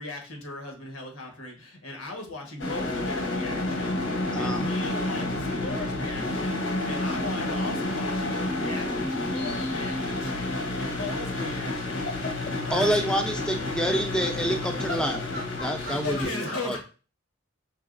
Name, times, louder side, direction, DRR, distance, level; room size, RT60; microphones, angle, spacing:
voice 1, 0.0-12.1 12.6-13.1 15.8-16.8, left 2 dB, 90° left, 2 dB, 1.3 m, -37 dB
sound 1, 2.6-16.2, left 2 dB, 70° left, 1.1 m, -30 dB
voice 2, 4.3-4.7 12.7-15.1 15.6-16.8, equal, 5° left, 5 dB, 0.5 m, -27 dB
voice 3, 12.1-12.5 14.9-16.8, left 2 dB, 50° left, 1 dB, 0.7 m, -38 dB
4.7 x 3.9 x 2.5 m, 0.35 s
head